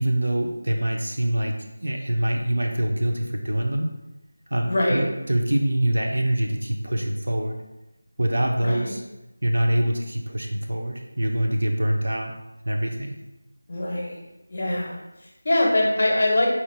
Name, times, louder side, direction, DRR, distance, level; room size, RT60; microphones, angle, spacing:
voice 1, 0.0-3.9 4.5-7.6 8.2-9.0 9.4-12.3 12.6-13.2, right 1 dB, 60° right, 2 dB, 0.7 m, -24 dB
voice 2, 4.7-5.0 8.6-9.0 13.7-14.2 14.5-16.6, left 1 dB, 35° left, -1 dB, 0.8 m, -23 dB
4.3 x 2.5 x 4.3 m, 0.99 s
figure-of-eight pair, 180°, 0 cm